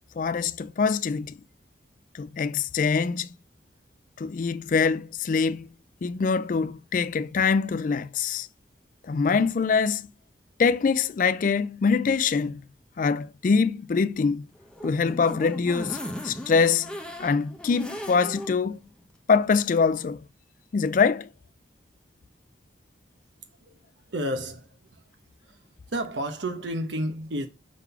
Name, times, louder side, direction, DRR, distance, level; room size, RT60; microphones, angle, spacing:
voice 1, 0.2-1.4 2.1-3.3 4.2-5.7 6.0-8.5 9.0-10.1 10.6-12.6 13.0-14.5 14.8-16.9 17.2-18.8 19.3-20.2 20.7-21.3, left 5 dB, 45° left, 0.3 m, -24 dB
sound 1, 14.5-18.5 18.9-19.0 19.3-19.4, equal, 5° left, 0.9 m, -37 dB
voice 2, 24.1-25.0 25.4-25.6 25.9-27.5, right 1 dB, 80° right, 1.0 m, -31 dB
6.0 x 3.9 x 5.6 m
head